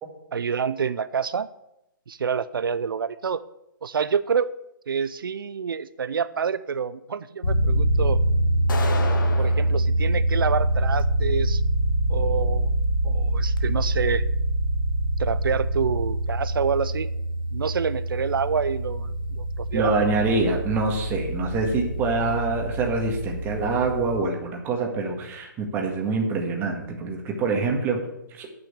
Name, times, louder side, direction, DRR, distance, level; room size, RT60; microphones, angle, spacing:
voice 1, 0.3-1.5 2.1-3.4 3.8-4.5 4.9-8.2 9.4-11.6 12.1-12.7 13.0-14.2 15.2-17.1 17.5-20.0, right 6 dB, 85° right, 14 dB, 0.5 m, -27 dB
sound 1, 7.4-24.2, right 1 dB, 90° left, 1.5 m, -25 dB
sound 2, 8.7-9.7, left 4 dB, 70° left, 1.8 m, -30 dB
voice 2, 19.7-28.0 28.3-28.5, right 3 dB, 20° right, 1 dB, 1.8 m, -25 dB
8.7 x 6.2 x 8.1 m, 0.85 s
hypercardioid pair, 145°, 11 cm